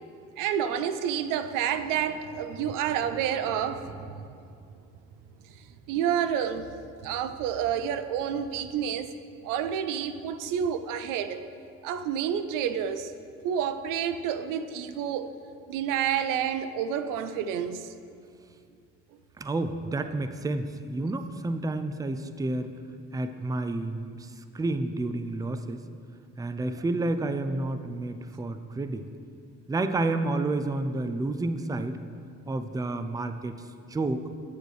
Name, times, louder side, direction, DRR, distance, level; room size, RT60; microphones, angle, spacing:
voice 1, 0.4-4.3 5.9-6.7 7.0-9.1 9.4-11.4 11.8-13.1 13.4-15.3 15.7-17.9, right 8 dB, 85° right, 11 dB, 0.5 m, -29 dB
voice 2, 19.4-22.7 23.1-25.8 26.4-29.1 29.7-32.0 32.5-33.6 33.9-34.2, right 2 dB, 10° right, 9 dB, 0.4 m, -30 dB
9.3 x 6.7 x 3.1 m, 2.3 s
supercardioid pair, 60°, 31 cm